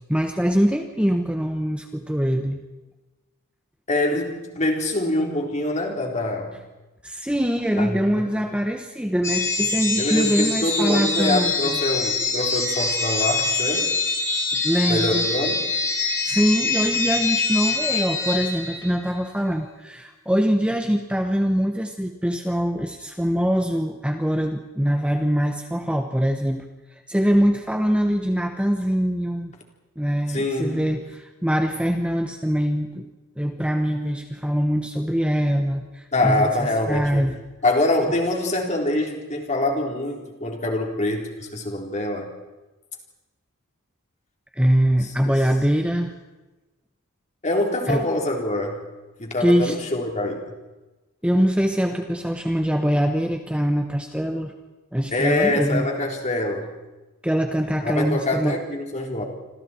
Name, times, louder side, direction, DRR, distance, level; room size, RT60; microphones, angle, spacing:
voice 1, 0.1-2.6 7.0-11.8 14.5-15.3 16.2-29.5 30.0-33.0 33.4-37.4 44.5-46.1 47.9-48.0 49.4-49.8 51.2-54.5 54.9-55.9 57.2-58.6, equal, 5° right, 4 dB, 1.2 m, -23 dB
voice 2, 3.9-6.5 7.8-8.2 10.0-13.9 14.9-15.7 30.3-30.8 36.1-37.2 37.6-42.3 47.4-48.8 49.2-50.4 55.1-56.7 57.8-59.3, left 1 dB, 35° left, 1 dB, 3.9 m, -25 dB
sound 1, 9.2-19.1, left 3 dB, 15° left, 3.5 m, -24 dB
28.5 x 26.0 x 4.5 m, 1.1 s
head